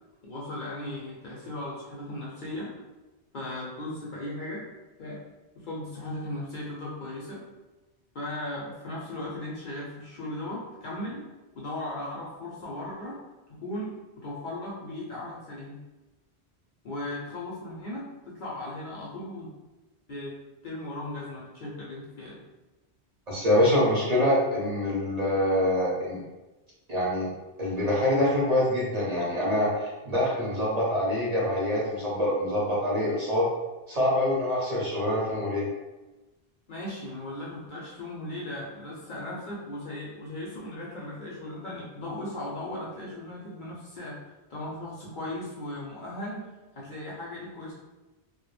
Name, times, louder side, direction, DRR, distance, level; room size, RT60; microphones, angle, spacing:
voice 1, 0.2-2.7 3.3-4.6 5.0-5.2 5.5-7.5 8.1-11.3 11.5-13.2 13.5-15.8 16.8-19.5 20.1-20.4 20.6-22.4 36.7-44.2 44.5-46.5 46.7-47.7, left 1 dB, 60° left, -5 dB, 0.6 m, -37 dB
voice 2, 23.3-26.2 26.9-27.3 27.6-33.5 33.9-35.7, left 1 dB, 45° right, -6 dB, 0.7 m, -25 dB
2.1 x 2.1 x 3.0 m, 1.1 s
omnidirectional pair, 1.1 m